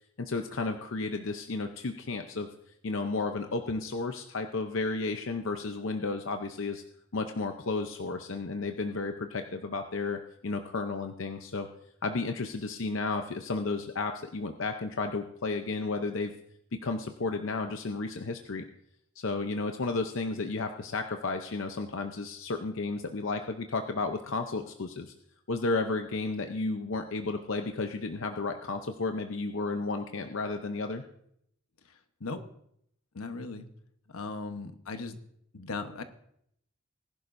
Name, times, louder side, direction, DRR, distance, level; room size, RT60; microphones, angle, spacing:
voice 1, 0.2-2.5 2.8-6.8 7.1-11.7 12.0-16.3 16.8-18.6 19.2-25.1 25.5-31.0, left 3 dB, 60° left, 6 dB, 0.7 m, -33 dB
voice 2, 33.1-33.7 34.1-35.2 35.5-36.0, left 3 dB, 80° left, 8 dB, 1.0 m, -37 dB
20.5 x 11.0 x 2.6 m, 0.72 s
head